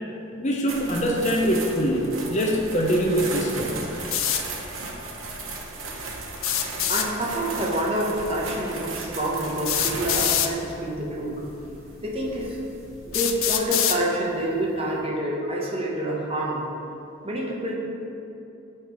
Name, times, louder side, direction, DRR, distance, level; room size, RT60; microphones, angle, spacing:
voice 1, 0.4-3.8, equal, 35° left, -1 dB, 0.6 m, -23 dB
sound 1, 0.7-13.6, right 3 dB, 80° right, 0.9 m, -36 dB
sound 2, 4.1-4.4 6.4-7.1 8.5-8.6 9.6-10.5 11.5-11.6 12.3-12.4 13.1-14.0, left 10 dB, 80° left, 0.4 m, -24 dB
voice 2, 6.9-11.4 12.0-12.6 13.1-16.6 17.2-17.8, right 1 dB, 30° right, -3 dB, 0.9 m, -27 dB
7.9 x 3.3 x 4.6 m, 2.8 s
head